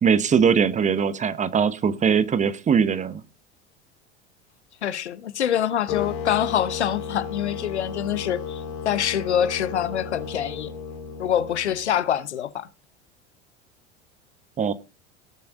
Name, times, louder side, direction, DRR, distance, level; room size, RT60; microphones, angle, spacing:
voice 1, 0.0-3.2 14.6-14.7, right 6 dB, 20° right, 1.1 m, -21 dB
voice 2, 4.8-10.7 11.2-12.7, left 10 dB, 70° left, 1.0 m, -25 dB
sound 1, 5.9-12.0, left 6 dB, 55° left, 3.1 m, -34 dB
17.5 x 6.9 x 3.8 m
figure-of-eight pair, 80°, 36 cm